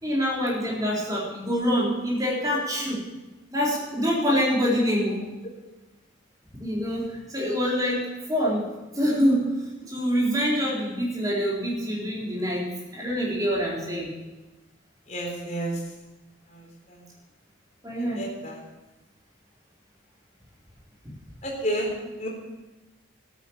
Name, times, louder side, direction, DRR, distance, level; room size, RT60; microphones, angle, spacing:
voice 1, 0.0-3.0 3.5-5.2 6.6-8.6 8.9-9.5 9.9-14.1 17.8-18.2, equal, 20° right, -4 dB, 4.1 m, -25 dB
voice 2, 15.1-15.8 16.5-16.6 16.9-17.0 18.2-18.6 21.4-21.9 22.2-22.3, right 1 dB, 40° left, -1 dB, 4.0 m, -30 dB
13.0 x 9.2 x 7.3 m, 1.1 s
head